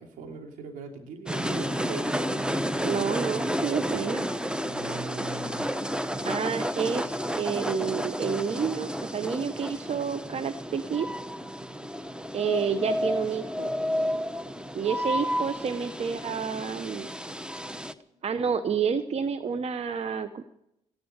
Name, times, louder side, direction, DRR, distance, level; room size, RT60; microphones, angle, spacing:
voice 1, 0.0-2.1 4.6-5.7, right 4 dB, 80° right, 3 dB, 2.9 m, -40 dB
sound 1, 1.3-17.9, equal, 5° right, 1.0 m, -31 dB
voice 2, 2.8-4.3 6.2-11.1 12.3-13.7 14.7-17.1 18.2-20.4, right 6 dB, 50° right, 12 dB, 0.9 m, -29 dB
15.0 x 11.0 x 8.1 m, 0.82 s
hypercardioid pair, 50°, 14 cm